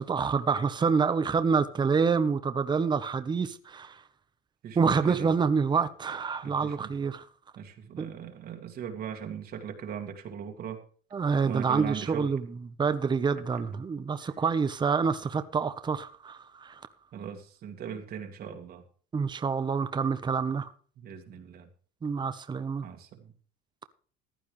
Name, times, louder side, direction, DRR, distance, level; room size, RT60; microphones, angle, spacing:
voice 1, 0.0-4.0 4.8-7.2 8.0-8.1 11.1-12.5 12.8-16.8 19.1-20.7 22.0-22.9, right 5 dB, 20° right, 1.1 m, -27 dB
voice 2, 4.6-5.3 6.4-6.9 7.6-10.8 11.4-12.3 13.6-13.7 17.1-18.8 21.0-21.7 22.8-23.3, right 8 dB, 50° right, 2.2 m, -39 dB
15.0 x 11.0 x 3.3 m
cardioid pair, 120°, 21 cm